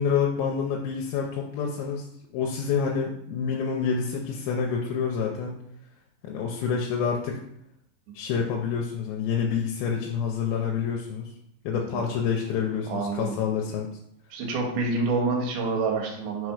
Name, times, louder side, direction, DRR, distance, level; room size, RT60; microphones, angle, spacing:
voice 1, 0.0-2.0 2.3-5.6 6.3-7.4 8.1-11.3 11.7-13.9, left 6 dB, 85° left, -1 dB, 2.6 m, -27 dB
voice 2, 12.9-13.4 14.3-16.5, right 3 dB, 80° right, 1 dB, 3.2 m, -28 dB
6.0 x 4.3 x 4.8 m, 0.75 s
omnidirectional pair, 4.3 m